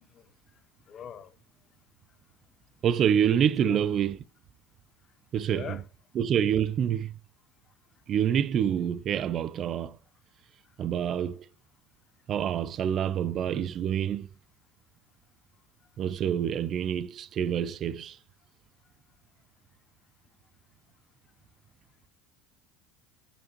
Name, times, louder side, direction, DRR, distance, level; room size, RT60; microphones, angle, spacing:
voice 1, 0.9-1.3 3.6-3.8 5.5-5.8, left 8 dB, 40° left, 0.8 m, -39 dB
voice 2, 2.8-4.2 5.3-5.8 6.1-7.1 8.1-10.0 10.8-11.4 12.3-14.3 16.0-18.2, right 9 dB, 45° right, 0.5 m, -27 dB
8.3 x 7.1 x 3.0 m
supercardioid pair, 95°, 0 cm